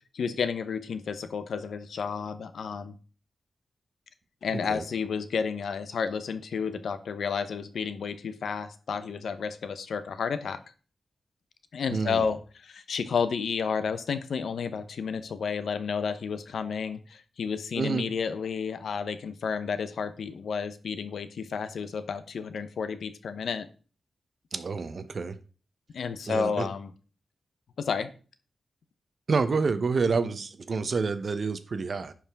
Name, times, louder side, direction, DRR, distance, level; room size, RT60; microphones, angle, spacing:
voice 1, 0.2-2.9 4.4-10.6 11.7-23.7 25.9-26.9 27.8-28.1, left 6 dB, 85° left, 12 dB, 0.7 m, -31 dB
voice 2, 11.9-12.3 17.8-18.0 24.5-25.4 26.3-26.7 29.3-32.1, right 4 dB, 50° right, 12 dB, 0.8 m, -28 dB
10.5 x 4.9 x 3.5 m, 0.37 s
wide cardioid pair, 115°, 0 cm